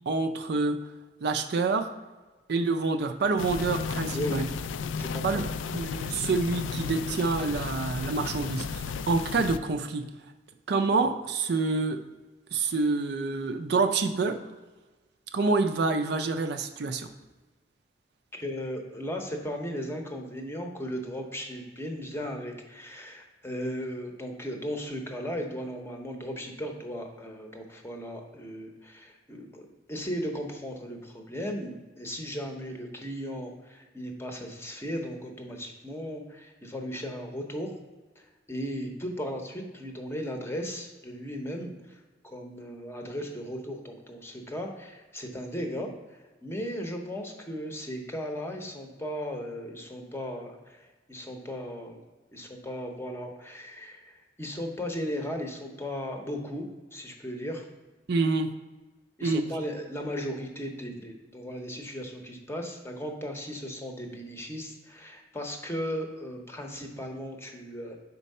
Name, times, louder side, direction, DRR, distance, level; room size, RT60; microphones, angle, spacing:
voice 1, 0.1-0.8 1.2-1.9 2.5-4.4 5.2-5.4 5.7-10.0 10.7-12.0 12.5-14.4 15.3-17.1 58.1-58.5 59.2-59.4, right 3 dB, 60° right, 6 dB, 0.4 m, -27 dB
sound 1, 3.4-9.6, left 5 dB, 85° left, 0.3 m, -33 dB
voice 2, 4.1-4.5 5.0-5.4 18.3-37.7 38.2-45.9 46.4-52.0 52.3-57.7 59.2-68.0, equal, 15° left, 3 dB, 0.7 m, -36 dB
4.5 x 4.1 x 5.3 m, 1.2 s
head